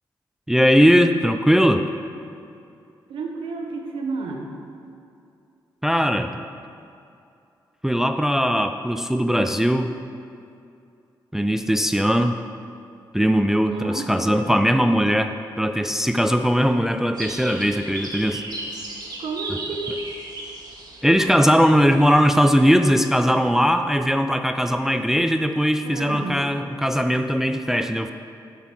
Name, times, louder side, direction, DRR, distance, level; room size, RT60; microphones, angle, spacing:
voice 1, 0.5-1.9 5.8-6.3 7.8-9.9 11.3-12.4 13.1-18.4 21.0-28.1, equal, 5° right, 8 dB, 0.3 m, -19 dB
voice 2, 3.1-4.6 13.6-14.6 19.2-20.0 25.8-26.4, right 3 dB, 80° right, 2 dB, 1.0 m, -31 dB
sound 1, 17.1-22.7, right 2 dB, 50° right, 1.2 m, -36 dB
7.4 x 3.9 x 6.0 m, 2.5 s
cardioid pair, 70°, 9 cm